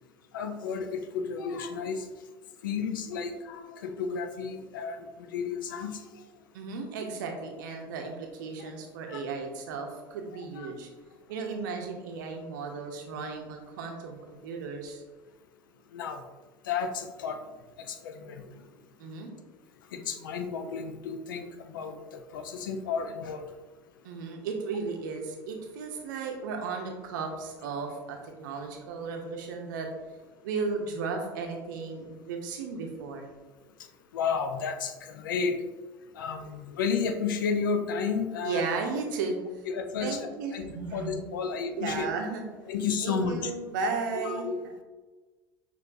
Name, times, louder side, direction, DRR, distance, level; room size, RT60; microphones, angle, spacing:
voice 1, 0.3-2.1 2.6-6.2 9.1-9.2 10.3-10.7 15.9-16.3 16.7-17.4 17.8-18.5 19.9-23.5 34.1-35.5 36.1-38.6 39.7-40.6 40.9-42.1 42.7-43.5 44.2-44.5, left 5 dB, 70° left, 6 dB, 0.5 m, -32 dB
voice 2, 6.5-10.9 11.3-15.0 19.0-19.3 24.0-29.9 30.4-33.3 36.5-36.6 38.4-39.4 40.0-42.4 43.0-44.5, right 4 dB, 65° right, 3 dB, 0.6 m, -35 dB
6.4 x 2.6 x 2.6 m, 1.3 s
figure-of-eight pair, 65°, 11 cm